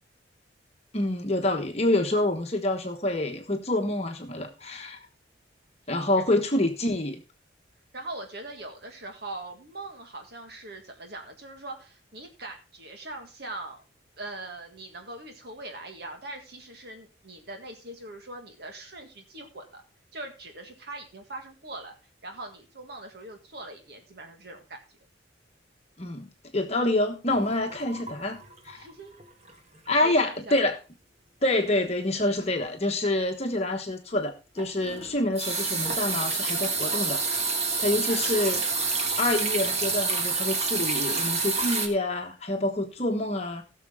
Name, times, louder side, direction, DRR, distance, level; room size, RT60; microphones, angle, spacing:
voice 1, 0.9-5.0 5.9-7.2 26.0-26.3 26.5-28.4 28.6-28.9 29.9-30.8 31.4-37.2 37.8-38.6 39.2-43.6, left 1 dB, 35° left, 3 dB, 1.2 m, -27 dB
voice 2, 7.9-13.8 14.2-19.8 20.1-21.9 22.2-24.8 28.7-29.2 30.0-30.5 38.1-38.5, right 2 dB, 55° right, 4 dB, 1.8 m, -41 dB
sound 1, 27.3-28.9 29.2-29.5 29.9-30.0 34.6-41.9, right 4 dB, 35° right, 1.6 m, -28 dB
16.5 x 6.6 x 3.7 m, 0.30 s
head